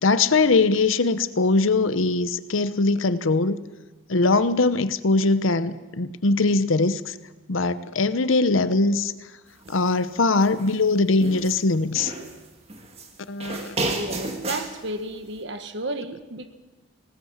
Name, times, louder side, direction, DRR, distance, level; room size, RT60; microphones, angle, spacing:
voice 1, 0.0-3.6 4.1-7.2 7.5-9.1 9.7-12.1 13.3-13.7, left 3 dB, 75° left, 13 dB, 0.8 m, -21 dB
sound 1, 9.6-9.9 10.3-11.6 11.9-13.1 13.4-14.7, right 2 dB, 30° right, 2.0 m, -32 dB
voice 2, 13.8-16.5, right 1 dB, 60° right, 9 dB, 1.5 m, -33 dB
20.0 x 18.0 x 7.3 m, 1.2 s
head